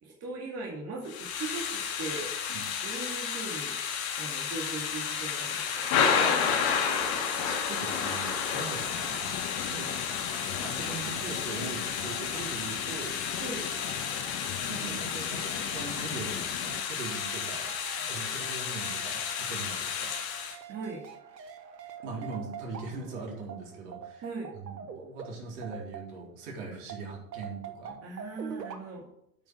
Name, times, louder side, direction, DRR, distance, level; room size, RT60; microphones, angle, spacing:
voice 1, 0.0-2.3 2.8-3.8 4.2-5.9 13.4-13.6 20.7-21.0 24.2-24.5 28.0-29.1, right 3 dB, 30° right, -1 dB, 2.3 m, -39 dB
Thunder / Rain, 1.1-20.6, left 7 dB, 50° left, 2.5 m, -31 dB
voice 2, 7.4-9.9 10.6-13.2 14.7-20.1 22.0-24.2 24.5-28.0, right 4 dB, 60° right, -2 dB, 3.9 m, -41 dB
sound 1, 8.8-16.8, left 13 dB, 30° left, 0.5 m, -41 dB
sound 2, 8.8-26.4 26.9-28.8, right 7 dB, 85° right, 1.3 m, -47 dB
8.9 x 5.9 x 6.3 m, 0.78 s
hypercardioid pair, 95°, 48 cm